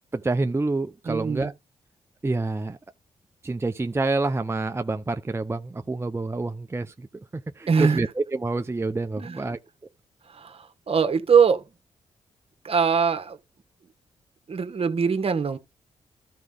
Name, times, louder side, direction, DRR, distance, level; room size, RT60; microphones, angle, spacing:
voice 1, 0.1-1.5 2.2-2.8 3.4-7.1 7.3-9.6, right 3 dB, 20° right, 0.6 m, -27 dB
voice 2, 1.1-1.5 7.7-8.1 9.2-9.4 10.3-11.6 12.6-13.4 14.5-15.6, right 6 dB, 50° right, 1.3 m, -22 dB
12.0 x 4.7 x 3.8 m
cardioid pair, 55°, 13 cm